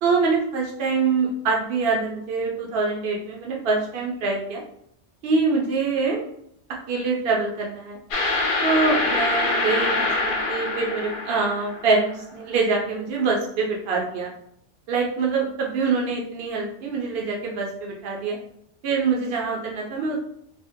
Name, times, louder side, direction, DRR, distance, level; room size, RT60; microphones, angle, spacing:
voice 1, 0.0-4.6 5.2-6.2 6.9-8.0 8.6-14.3 14.9-18.4 18.8-20.2, right 4 dB, 60° right, -1 dB, 0.8 m, -24 dB
sound 1, 8.1-12.0, left 2 dB, 55° left, 0.7 m, -24 dB
3.5 x 2.8 x 2.6 m, 0.73 s
omnidirectional pair, 1.2 m